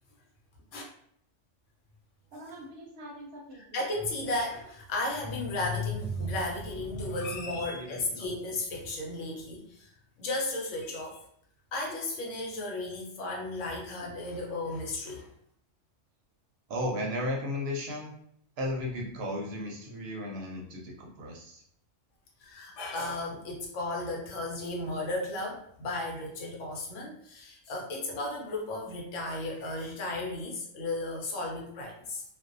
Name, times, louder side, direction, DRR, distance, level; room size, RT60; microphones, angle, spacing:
voice 1, 2.3-3.8 7.5-8.3 16.7-18.1 18.6-21.6, left 1 dB, 65° right, -1 dB, 0.7 m, -36 dB
voice 2, 3.7-9.9 10.2-11.2 11.7-15.3 22.4-32.2, left 2 dB, 80° left, -1 dB, 1.0 m, -34 dB
2.5 x 2.0 x 2.5 m, 0.69 s
omnidirectional pair, 1.3 m